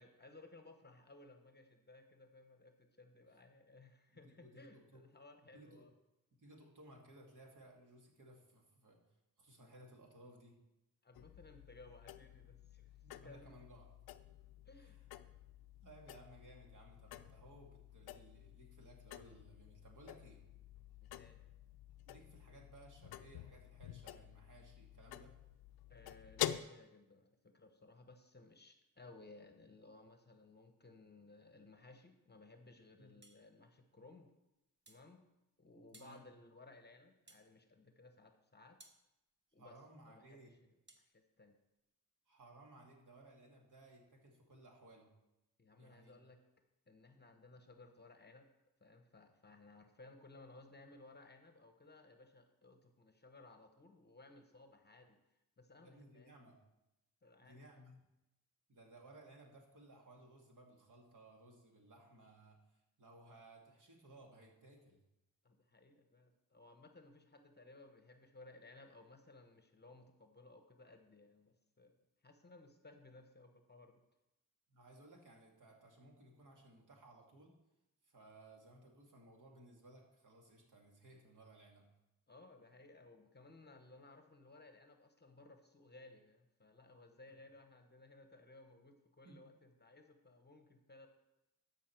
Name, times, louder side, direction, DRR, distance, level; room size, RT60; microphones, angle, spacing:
voice 1, 0.0-5.9 11.0-13.5 14.6-15.0 21.0-21.4 25.9-34.3 34.9-35.3 35.6-38.8 39.5-39.7 40.0-40.6 41.0-41.5 45.6-46.4 46.9-48.5 48.8-55.2 55.6-56.3 57.2-57.7 65.4-72.0 72.2-74.0 82.3-91.1, left 2 dB, 25° left, 6 dB, 1.0 m, -60 dB
voice 2, 4.1-5.0 5.5-5.9 6.3-9.0 9.4-10.6 13.0-13.9 14.8-14.9 15.8-20.4 22.1-25.3 33.0-33.1 35.9-36.3 39.6-40.5 42.3-45.1 45.8-46.1 55.8-56.6 57.4-58.0 58.7-65.0 74.7-77.6 78.0-81.9 89.2-89.5, right 1 dB, 55° right, 0 dB, 2.3 m, -60 dB
sound 1, 11.1-26.6, left 12 dB, 80° left, 0.5 m, -49 dB
sound 2, 33.2-33.4 34.9-35.1 35.9-36.2 37.3-37.5 38.8-39.0 40.9-41.1, right 2 dB, 30° right, 1.2 m, -62 dB
13.0 x 5.4 x 4.5 m, 0.92 s
cardioid pair, 75°, 37 cm